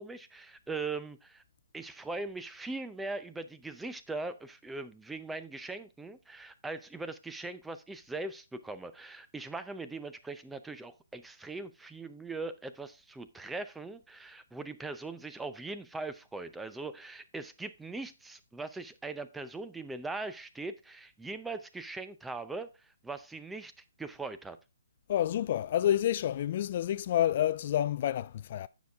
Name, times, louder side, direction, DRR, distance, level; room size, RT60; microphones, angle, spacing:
voice 1, 0.0-1.4 1.7-23.7 24.0-24.6, right 3 dB, 5° right, 0.5 m, -40 dB
voice 2, 25.1-28.7, left 11 dB, 45° left, 0.3 m, -29 dB
9.3 x 6.4 x 3.4 m
hypercardioid pair, 145°, 0 cm